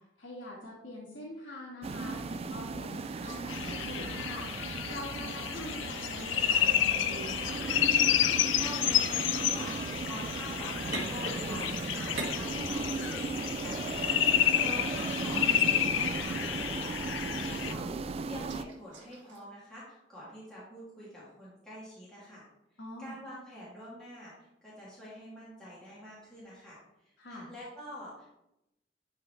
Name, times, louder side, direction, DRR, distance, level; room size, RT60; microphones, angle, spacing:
voice 1, 0.2-7.7 14.6-14.7 22.8-23.1 27.2-27.5, left 1 dB, 70° left, -5 dB, 1.7 m, -44 dB
sound 1, 1.8-18.6, right 4 dB, 35° right, 0.3 m, -37 dB
sound 2, 3.0-17.3 17.6-19.4, right 2 dB, 85° right, 2.2 m, -48 dB
sound 3, 3.5-17.7, left 11 dB, 90° left, 0.4 m, -30 dB
voice 2, 8.1-22.4 23.0-28.4, equal, 5° left, -10 dB, 2.7 m, -46 dB
11.5 x 4.3 x 3.3 m, 0.87 s
head